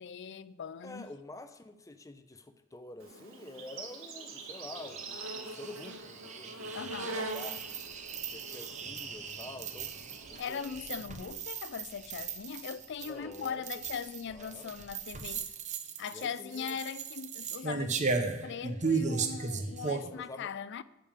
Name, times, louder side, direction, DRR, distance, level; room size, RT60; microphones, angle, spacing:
voice 1, 0.0-1.1 6.7-7.2 10.4-15.5 16.0-20.8, left 7 dB, 60° left, 0.4 m, -40 dB
voice 2, 0.8-7.6 8.3-9.9 10.3-10.7 13.0-13.7 14.3-14.7 16.1-16.8 20.1-20.5, left 2 dB, 15° left, 0.7 m, -48 dB
Insect, 3.0-10.6, right 2 dB, 90° right, 1.5 m, -43 dB
sound 1, 4.7-20.1, right 4 dB, 35° right, 0.9 m, -37 dB
10.0 x 5.2 x 7.3 m
head